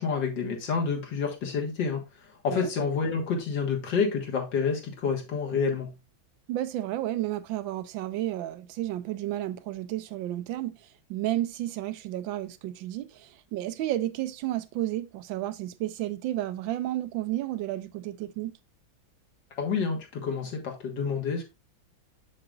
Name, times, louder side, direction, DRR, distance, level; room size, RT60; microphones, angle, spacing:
voice 1, 0.0-2.0 2.4-5.9 19.6-21.5, left 5 dB, 65° left, 2.1 m, -28 dB
voice 2, 6.5-10.7 11.1-18.5, right 14 dB, 80° right, 1.3 m, -32 dB
6.8 x 6.4 x 2.4 m
omnidirectional pair, 2.1 m